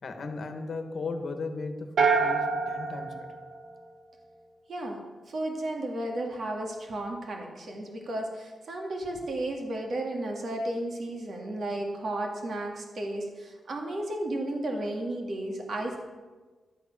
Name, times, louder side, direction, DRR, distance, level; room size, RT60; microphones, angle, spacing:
voice 1, 0.0-3.1, left 3 dB, 50° left, 6 dB, 1.4 m, -36 dB
sound 1, 2.0-4.2, right 5 dB, 70° right, 1.3 m, -27 dB
voice 2, 4.7-16.0, right 1 dB, 55° right, 1 dB, 2.1 m, -33 dB
12.0 x 8.7 x 6.1 m, 1.4 s
wide cardioid pair, 140°, 0 cm